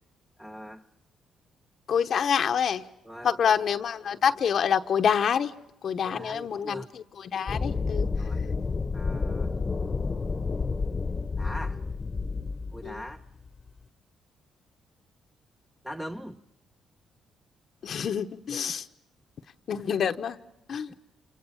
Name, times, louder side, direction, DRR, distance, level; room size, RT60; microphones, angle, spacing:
voice 1, 0.4-0.8 3.0-3.5 6.0-6.9 8.2-8.4 8.9-9.5 11.4-11.8 12.7-13.2 15.8-16.4 18.5-18.8 20.7-20.9, equal, 5° right, 1.0 m, -41 dB
voice 2, 1.9-2.8 3.2-5.5 5.8-8.1 12.8-13.0 17.8-18.8 19.7-20.4 20.7-20.9, left 7 dB, 60° left, 1.1 m, -27 dB
sound 1, 7.5-13.8, left 4 dB, 30° left, 1.2 m, -30 dB
28.5 x 27.5 x 7.2 m
cardioid pair, 90°, 0 cm